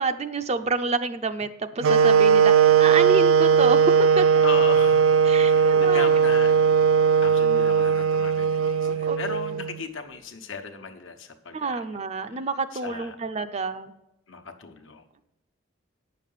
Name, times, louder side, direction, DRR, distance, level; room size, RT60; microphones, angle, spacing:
voice 1, 0.0-4.2 5.2-6.1 8.8-9.2 11.5-13.9, right 3 dB, 30° right, 10 dB, 0.5 m, -28 dB
sound 1, 1.8-9.8, right 6 dB, 90° right, 0.4 m, -19 dB
voice 2, 4.4-5.0 5.4-6.6 7.2-11.8 12.8-13.2 14.3-15.0, left 4 dB, 70° left, 5 dB, 1.1 m, -36 dB
9.4 x 6.6 x 5.6 m, 0.93 s
head